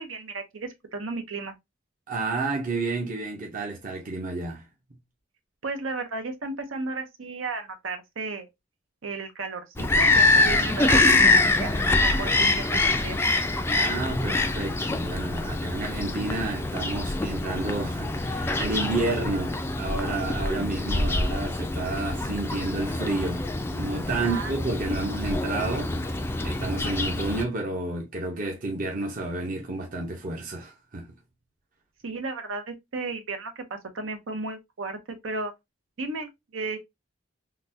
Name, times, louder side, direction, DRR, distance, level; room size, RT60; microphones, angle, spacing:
voice 1, 0.0-1.5 5.6-8.5 9.0-13.2 24.2-24.5 24.9-25.0 32.0-35.5 36.0-36.8, right 3 dB, 85° right, 0.8 m, -34 dB
voice 2, 2.1-4.6 13.7-23.5 23.7-31.1, right 2 dB, 45° right, 0.7 m, -31 dB
Bird vocalization bird call bird song, 9.8-27.4, left 2 dB, 10° left, 0.3 m, -25 dB
3.8 x 2.2 x 2.6 m
head